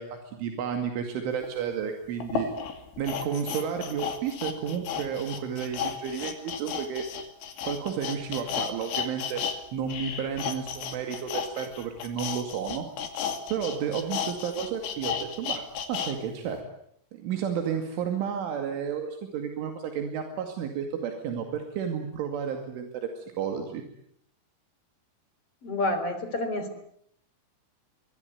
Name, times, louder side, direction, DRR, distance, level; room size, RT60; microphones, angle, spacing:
voice 1, 0.0-2.5 3.0-7.1 7.6-9.5 9.7-12.9 13.5-16.6 17.2-23.8, right 7 dB, 80° right, 5 dB, 4.8 m, -32 dB
sound 1, 1.4-1.5 2.2-9.6 9.8-16.1 16.5-16.6, left 7 dB, 80° left, 4.9 m, -33 dB
voice 2, 25.6-26.8, left 2 dB, 35° left, 9 dB, 4.3 m, -29 dB
24.5 x 22.5 x 9.4 m, 0.70 s
omnidirectional pair, 5.5 m